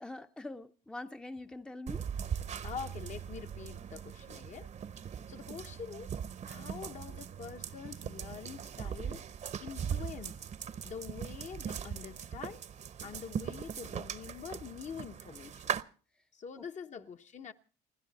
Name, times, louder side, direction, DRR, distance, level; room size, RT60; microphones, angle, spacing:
voice 1, 0.0-2.0 16.6-16.7 17.0-17.1, left 2 dB, 5° left, 0.7 m, -44 dB
sound 1, 1.9-15.8, right 8 dB, 45° right, 0.9 m, -40 dB
voice 2, 2.6-4.7 5.3-6.2 6.4-9.2 9.6-10.4 10.8-12.6 13.0-15.7 16.3-17.5, left 7 dB, 45° left, 1.1 m, -45 dB
29.5 x 10.5 x 4.1 m
cardioid pair, 110°, 17 cm